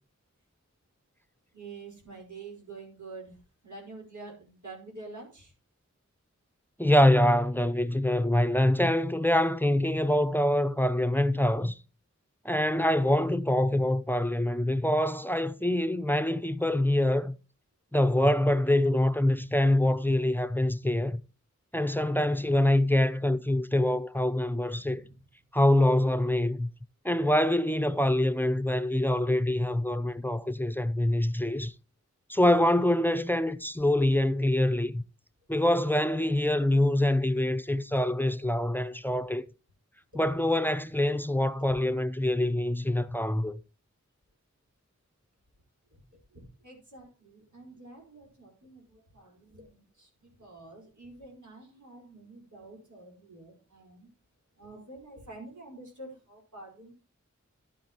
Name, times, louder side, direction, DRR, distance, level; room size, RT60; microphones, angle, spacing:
voice 1, 1.5-5.5 24.7-25.1 40.1-40.2 40.8-40.9 41.6-41.8 42.2-42.4 45.9-54.1 54.6-56.9, right 3 dB, 85° right, 4.9 m, -48 dB
voice 2, 6.8-11.8 12.4-17.4 17.9-21.2 21.7-25.0 25.5-26.7 27.0-31.7 32.3-35.0 35.5-39.5 40.1-43.6, left 1 dB, 5° left, 0.7 m, -25 dB
12.0 x 9.6 x 3.0 m
wide cardioid pair, 40°, 29 cm